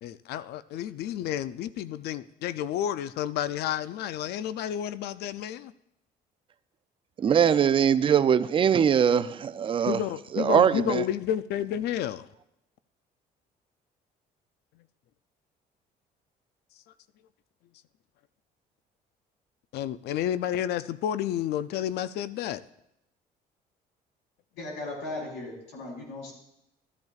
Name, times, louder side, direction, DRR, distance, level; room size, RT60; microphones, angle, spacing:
voice 1, 0.0-5.7 9.9-12.3 19.7-22.6, left 10 dB, 75° left, 0.4 m, -31 dB
voice 2, 7.2-10.0 10.3-11.0, right 8 dB, 30° right, 0.4 m, -22 dB
voice 3, 24.6-26.3, left 2 dB, 90° left, 3.8 m, -37 dB
13.5 x 10.5 x 2.4 m
cardioid pair, 110°, 17 cm